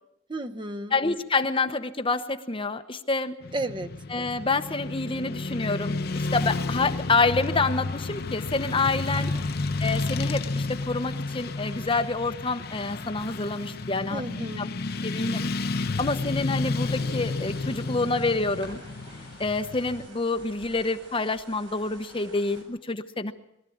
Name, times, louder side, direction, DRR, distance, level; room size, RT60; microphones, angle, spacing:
voice 1, 0.3-1.0 3.5-3.9 9.2-9.5 14.1-14.7, right 2 dB, 25° right, 7 dB, 0.9 m, -33 dB
voice 2, 0.9-3.4 4.1-9.3 9.8-14.2 14.6-14.7 15.0-15.5 16.0-18.8 19.2-23.3, left 3 dB, 30° left, 8 dB, 1.0 m, -27 dB
Motorcycle / Traffic noise roadway noise, 3.4-20.1, left 3 dB, 55° left, 0.8 m, -31 dB
sound 1, 16.8-22.6, right 2 dB, 65° right, 7.8 m, -50 dB
23.0 x 14.0 x 8.6 m, 0.83 s
head